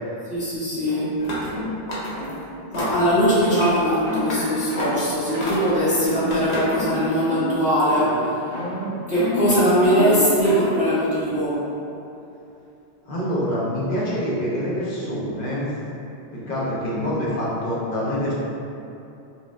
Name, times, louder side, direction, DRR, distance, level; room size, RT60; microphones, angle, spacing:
voice 1, 0.3-1.1 2.7-8.4 9.1-11.6, equal, 10° right, -11 dB, 0.5 m, -21 dB
sound 1, 0.9-1.0 1.5-1.7 2.1-2.3 2.8-3.0 3.4-3.6 4.1-4.3 4.7-4.9 5.3-5.6 6.0-6.3 6.6-7.0 7.2-7.6 7.9-8.2 8.5-10.9, left 1 dB, 50° right, 1.7 m, -29 dB
sound 2, 1.2-1.6 1.9-2.3 2.7-3.1 3.6-3.9 4.3-4.4 4.8-5.0 5.4-5.8 6.3-6.8, equal, 90° left, 1.0 m, -30 dB
voice 2, 13.1-15.7 16.3-18.3, equal, 60° left, -7 dB, 0.8 m, -26 dB
4.2 x 2.1 x 2.3 m, 2.8 s
omnidirectional pair, 1.0 m